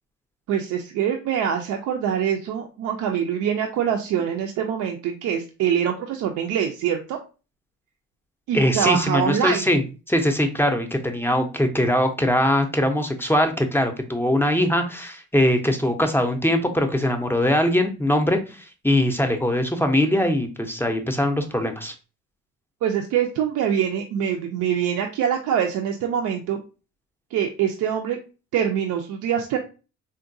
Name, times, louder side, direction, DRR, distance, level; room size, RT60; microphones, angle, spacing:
voice 1, 0.5-7.2 8.5-9.7 22.8-26.6 27.3-28.2 28.5-29.6, right 8 dB, 80° right, 3 dB, 0.5 m, -24 dB
voice 2, 8.5-9.8 10.1-21.9, left 1 dB, 10° left, 5 dB, 0.5 m, -21 dB
3.7 x 2.2 x 2.6 m, 0.32 s
cardioid pair, 90°, 30 cm